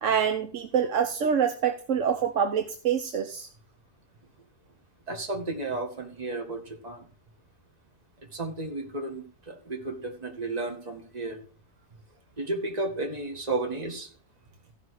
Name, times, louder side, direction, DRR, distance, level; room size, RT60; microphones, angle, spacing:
voice 1, 0.0-3.5, right 7 dB, 75° right, 7 dB, 1.2 m, -26 dB
voice 2, 5.1-7.1 8.3-11.4 12.4-14.1, right 2 dB, 30° right, 4 dB, 2.0 m, -33 dB
15.0 x 6.1 x 4.8 m, 0.40 s
omnidirectional pair, 1.3 m